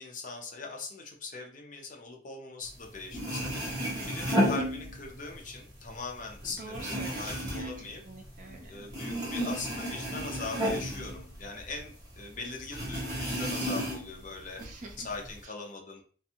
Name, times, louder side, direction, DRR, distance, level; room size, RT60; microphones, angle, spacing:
voice 1, 0.0-3.8 4.0-8.0 8.7-14.6 15.0-16.0, left 3 dB, 45° left, 1 dB, 0.6 m, -41 dB
sound 1, 2.8-2.9 3.1-5.3 5.7-8.6 8.9-11.9 12.2-12.3 12.7-14.2 14.6-15.4, equal, 20° right, 0.8 m, -32 dB
voice 2, 3.8-4.2 6.4-7.7 8.0-8.9 14.6-15.1 15.4-15.5, right 3 dB, 45° right, 2 dB, 0.5 m, -46 dB
2.5 x 2.2 x 2.8 m, 0.43 s
head